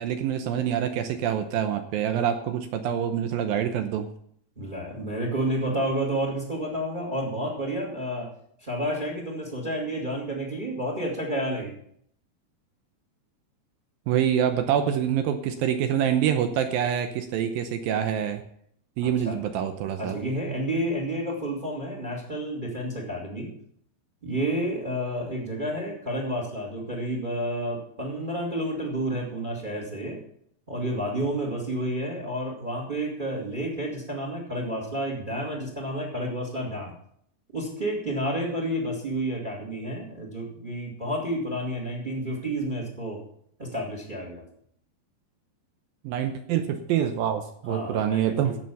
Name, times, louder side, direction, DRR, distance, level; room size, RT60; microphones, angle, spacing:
voice 1, 0.0-4.1 14.1-18.4 19.0-20.2 46.0-48.6, right 9 dB, 80° right, 8 dB, 2.2 m, -26 dB
voice 2, 4.5-8.3 8.6-11.7 19.0-19.3 20.0-23.5 24.2-30.2 30.7-36.9 37.5-43.2 43.6-44.4 47.6-48.6, right 1 dB, 15° right, -2 dB, 1.6 m, -30 dB
16.0 x 6.1 x 7.0 m, 0.67 s
omnidirectional pair, 5.1 m